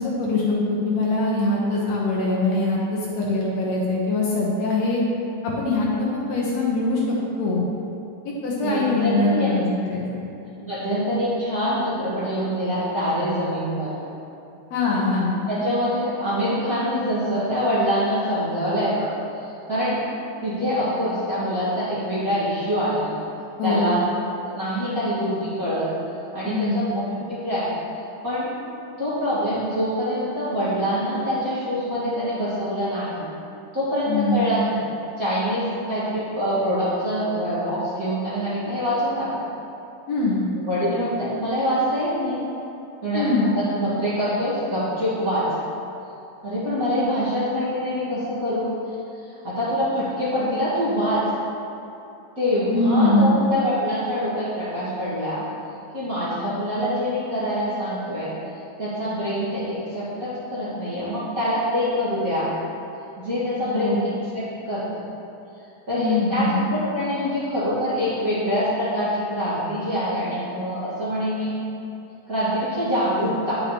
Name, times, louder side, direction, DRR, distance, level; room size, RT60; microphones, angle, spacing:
voice 1, 0.0-5.0 5.6-7.7 8.3-10.2 14.7-15.4 23.6-23.9 26.4-26.9 34.1-34.5 40.1-40.4 43.1-43.5 52.7-53.4 63.7-64.0 66.0-66.7, left 2 dB, 70° left, -4 dB, 2.0 m, -23 dB
voice 2, 8.6-9.5 10.7-13.9 15.5-19.1 19.3-20.0 20.4-23.2 23.6-24.1 24.4-25.9 26.3-27.7 28.2-28.5 29.0-33.2 33.7-34.6 35.2-39.5 40.6-42.4 43.0-43.3 43.5-45.5 46.4-48.9 49.3-51.3 52.4-55.4 55.9-58.3 58.8-62.5 63.2-65.1 65.9-71.5 72.3-73.6, equal, 35° right, -12 dB, 1.6 m, -25 dB
9.6 x 6.8 x 2.9 m, 2.7 s
omnidirectional pair, 3.5 m